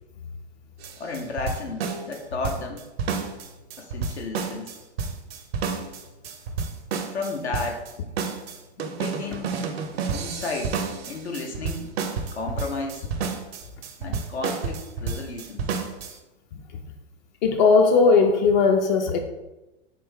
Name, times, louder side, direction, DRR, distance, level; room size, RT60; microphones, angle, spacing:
sound 1, 0.8-16.1, right 5 dB, 65° right, 0.6 m, -30 dB
voice 1, 1.0-2.9 3.8-4.7 7.1-7.8 8.8-9.5 10.1-10.7 11.1-11.9 12.3-13.1 14.0-15.7, left 3 dB, 80° left, 1 dB, 0.7 m, -33 dB
voice 2, 17.4-19.2, left 4 dB, 45° left, 4 dB, 0.5 m, -18 dB
4.2 x 2.7 x 3.6 m, 1.0 s
figure-of-eight pair, 90°, 33 cm